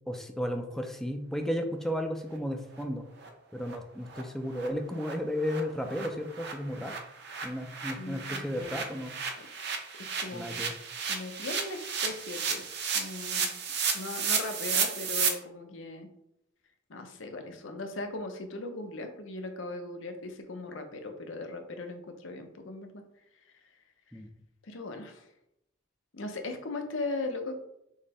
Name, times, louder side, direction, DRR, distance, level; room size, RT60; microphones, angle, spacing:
voice 1, 0.1-3.0 3.5-6.9 7.4-9.2 10.3-10.7 24.1-24.3, equal, ahead, 4 dB, 0.4 m, -34 dB
sound 1, 2.3-2.4 2.7-2.8 3.2-3.3 3.6-3.8 4.1-4.2 4.5-4.7 5.0-5.1 5.4-15.3, right 6 dB, 60° right, 0.7 m, -33 dB
voice 2, 8.0-8.8 10.0-10.6 11.1-12.6 12.9-13.5 13.9-16.1 16.9-23.0 24.6-25.2 26.1-27.6, left 2 dB, 90° left, 5 dB, 0.7 m, -38 dB
6.2 x 2.1 x 3.5 m, 0.80 s
head